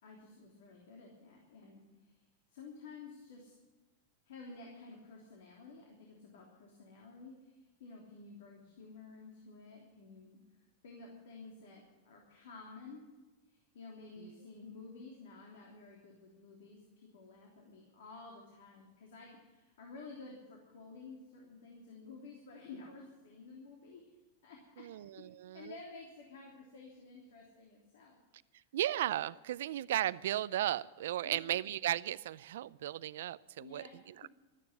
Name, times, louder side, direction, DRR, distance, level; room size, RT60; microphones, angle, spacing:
voice 1, 0.0-3.6 4.2-13.0 13.5-24.1 24.4-24.8 25.2-28.6 31.2-31.6 33.6-34.0, left 4 dB, 80° left, 0 dB, 3.2 m, -52 dB
voice 2, 24.8-25.7 28.7-34.3, right 12 dB, 80° right, 18 dB, 0.5 m, -36 dB
13.0 x 9.7 x 9.8 m, 1.2 s
supercardioid pair, 145°, 0 cm